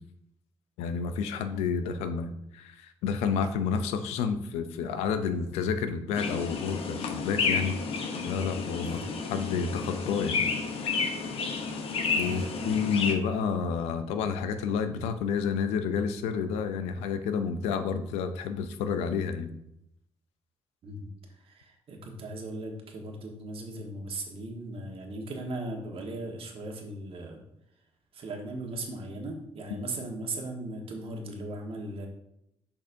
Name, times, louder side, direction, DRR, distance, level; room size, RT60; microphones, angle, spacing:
voice 1, 0.8-7.8 8.2-9.0 9.3-10.4 12.1-19.5 29.8-29.9, left 6 dB, 90° left, 9 dB, 0.5 m, -30 dB
sound 1, 6.2-13.2, left 5 dB, 65° left, 0.9 m, -31 dB
voice 2, 12.1-12.6 20.8-21.1 21.4-27.4 28.1-32.1, right 2 dB, 60° right, 2 dB, 1.4 m, -38 dB
6.7 x 5.3 x 2.7 m, 0.80 s
supercardioid pair, 65°, 11 cm